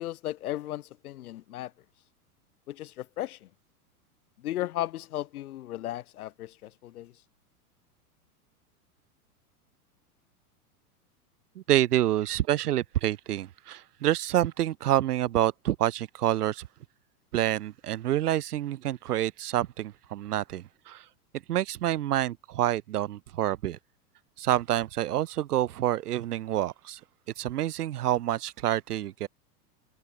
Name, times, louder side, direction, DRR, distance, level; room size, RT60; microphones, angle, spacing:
voice 1, 0.0-1.7 2.7-3.4 4.4-7.1, left 14 dB, 70° left, 2.4 m, -35 dB
voice 2, 11.5-16.7 17.3-21.0 21.3-23.8 24.4-27.0 27.4-29.3, right 13 dB, 80° right, 1.2 m, -27 dB
hypercardioid pair, 105°, 45 cm